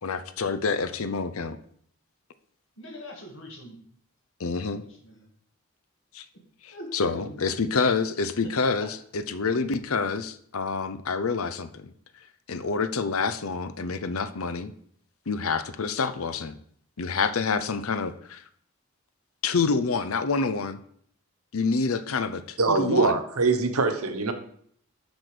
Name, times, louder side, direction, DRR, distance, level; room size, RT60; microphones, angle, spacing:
voice 1, 0.0-1.6 4.4-4.8 6.1-6.2 6.6-11.9 12.5-14.7 15.3-16.5 17.0-18.4 19.4-20.8 21.5-23.2, left 4 dB, 75° left, 13 dB, 0.7 m, -27 dB
voice 2, 2.8-3.8 5.0-5.2 6.7-7.8 8.4-8.5, left 1 dB, 60° left, 1 dB, 2.2 m, -42 dB
voice 3, 22.6-24.3, right 3 dB, 85° right, 7 dB, 1.2 m, -23 dB
8.1 x 6.3 x 5.0 m, 0.63 s
head